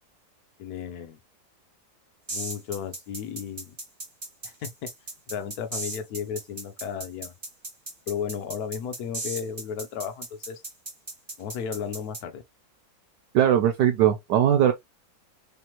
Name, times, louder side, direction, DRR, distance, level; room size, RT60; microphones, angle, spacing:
voice 1, 0.6-1.2 2.3-3.8 4.4-4.9 5.3-7.3 8.1-10.6 11.4-12.4, left 7 dB, 60° left, 1.1 m, -34 dB
sound 1, 2.3-12.2, right 2 dB, 45° right, 0.3 m, -36 dB
voice 2, 13.3-14.7, right 10 dB, 75° right, 1.0 m, -20 dB
3.5 x 3.4 x 2.9 m
omnidirectional pair, 2.1 m